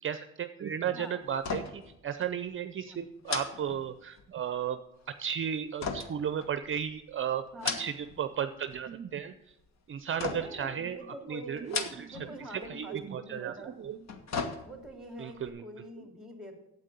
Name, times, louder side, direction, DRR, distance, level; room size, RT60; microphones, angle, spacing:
voice 1, 0.0-4.8 5.1-7.4 7.8-9.3 9.9-11.0 11.3-14.1 15.2-15.6, right 8 dB, 45° right, 10 dB, 0.6 m, -34 dB
sound 1, 1.4-1.9 2.2-2.4 3.2-4.3 5.8-6.9 7.4-8.2 8.5-9.1 10.2-10.7 11.6-12.3 12.6-12.7 13.8-15.0 15.4-15.5, left 5 dB, 60° left, 1.4 m, -36 dB
voice 2, 10.3-13.8 14.6-16.5, equal, ahead, 4 dB, 2.8 m, -45 dB
8.8 x 8.2 x 6.8 m, 0.88 s
cardioid pair, 90°, 30 cm